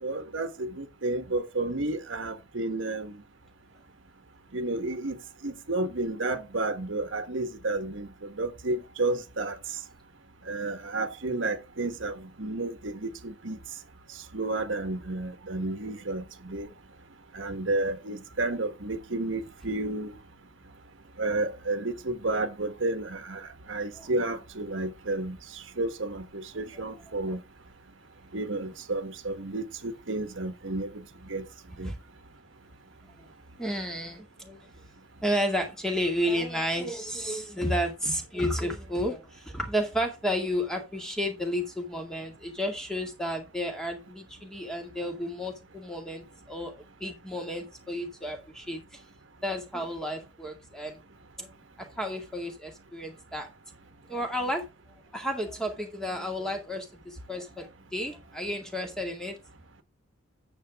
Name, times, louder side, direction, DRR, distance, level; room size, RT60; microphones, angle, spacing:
voice 1, 0.0-3.2 4.5-5.2 5.4-9.6 10.5-13.6 14.3-16.7 17.3-20.1 21.2-25.4 25.8-27.4 28.3-31.0 31.3-31.4 31.8-31.9, right 2 dB, 85° right, 1.4 m, -31 dB
voice 2, 26.7-27.4 31.8-32.0 33.2-33.3 33.6-34.7 35.2-49.0 49.4-51.0 51.4-53.5 54.1-54.7 55.1-59.4, equal, 5° left, 2.2 m, -32 dB
9.1 x 7.4 x 3.6 m
head